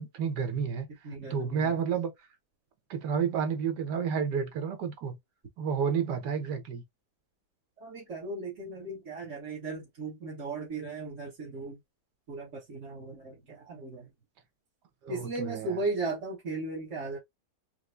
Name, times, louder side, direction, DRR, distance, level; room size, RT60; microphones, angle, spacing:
voice 1, 0.0-0.9 1.2-2.1 2.9-5.2 5.6-6.8 15.0-15.7, right 6 dB, 75° right, 1.5 m, -30 dB
voice 2, 1.0-1.8 7.8-11.8 12.3-14.1 15.1-17.2, right 3 dB, 50° right, 1.6 m, -36 dB
4.6 x 2.1 x 2.5 m
omnidirectional pair, 1.9 m